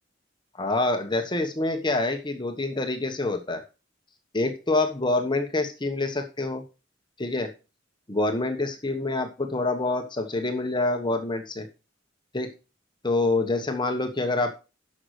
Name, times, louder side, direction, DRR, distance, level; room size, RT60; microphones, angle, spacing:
voice 1, 0.6-3.6 4.3-6.6 7.2-7.5 8.1-11.7 12.3-12.5 13.0-14.6, left 2 dB, 25° left, 5 dB, 1.1 m, -26 dB
11.0 x 6.5 x 4.8 m, 0.31 s
head